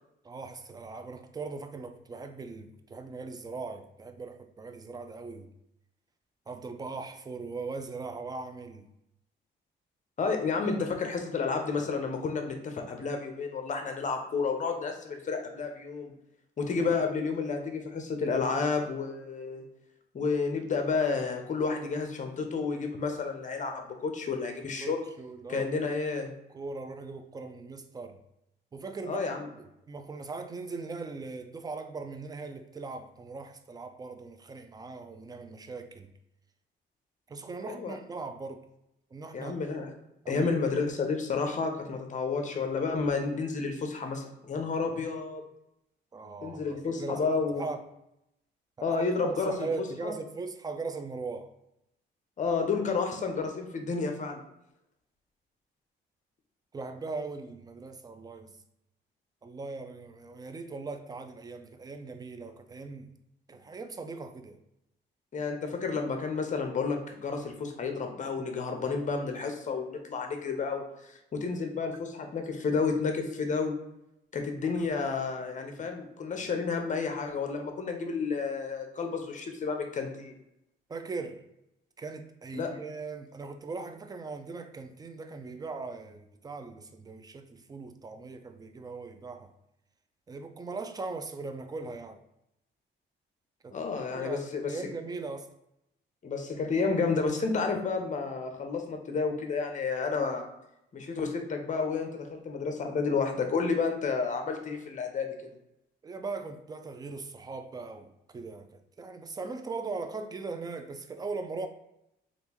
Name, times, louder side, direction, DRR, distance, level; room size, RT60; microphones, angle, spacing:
voice 1, 0.2-5.5 6.5-8.9 16.8-17.0 24.8-26.0 26.5-28.2 28.7-29.2 29.6-36.1 37.3-38.6 39.1-39.6 40.2-40.5 46.1-47.3 47.6-47.8 49.2-51.5 56.7-58.5 59.4-63.1 63.5-64.6 71.8-71.9 80.9-81.4 82.0-89.5 90.3-92.2 93.6-93.8 94.1-95.5 106.0-108.7 109.0-111.7, right 3 dB, 20° right, 0.4 m, -39 dB
voice 2, 10.2-16.1 16.6-19.6 20.1-25.0 25.5-26.3 29.1-29.5 37.7-38.0 39.3-39.9 40.3-45.4 46.4-47.7 48.8-50.1 52.4-54.4 65.3-73.8 74.3-80.4 82.5-82.7 93.7-94.8 96.2-100.4 100.9-105.4, left 4 dB, 40° left, 0.7 m, -31 dB
3.4 x 2.5 x 2.9 m
cardioid pair, 90°, 20 cm